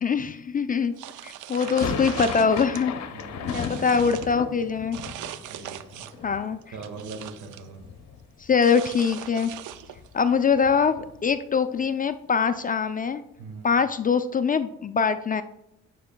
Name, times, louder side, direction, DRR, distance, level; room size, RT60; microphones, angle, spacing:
voice 1, 0.0-0.9 1.2-2.9 3.5-5.0 6.2-6.6 8.4-9.5 10.1-13.2 13.6-15.4, left 6 dB, 30° left, 11 dB, 0.4 m, -23 dB
sound 1, 1.0-2.8 3.2-4.3 4.9-6.3 6.6-7.7 8.6-10.1, right 12 dB, 85° right, 0.5 m, -40 dB
sound 2, 1.5-7.5 7.7-8.6 8.9-9.0 9.2-11.4, left 6 dB, 65° left, 0.8 m, -36 dB
voice 2, 3.1-4.2 5.5-6.1 6.7-7.8 13.4-13.7, right 4 dB, 70° right, 4 dB, 1.7 m, -41 dB
9.3 x 6.4 x 2.2 m, 0.85 s
cardioid pair, 90°, 30 cm